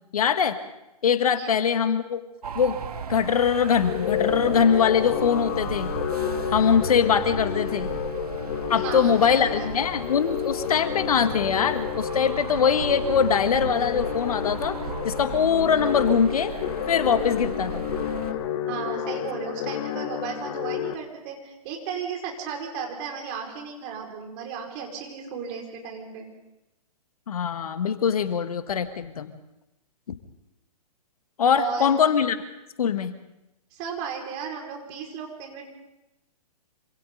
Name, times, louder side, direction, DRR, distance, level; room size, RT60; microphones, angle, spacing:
voice 1, 0.1-0.5 1.0-2.2 2.5-2.8 3.1-5.9 6.5-7.9 8.7-14.8 15.0-16.5 16.9-17.8 27.3-29.3 31.4-32.4 32.8-33.1, left 7 dB, 65° left, 9 dB, 1.7 m, -22 dB
sound 1, 2.4-18.3, right 6 dB, 70° right, 2.0 m, -36 dB
sound 2, 3.8-20.9, left 9 dB, 45° left, 1.8 m, -30 dB
voice 2, 8.7-9.7 18.7-26.3 31.5-32.0 33.7-35.7, right 6 dB, 35° right, 1 dB, 5.5 m, -35 dB
27.0 x 26.5 x 4.0 m, 0.94 s
figure-of-eight pair, 125°, 21 cm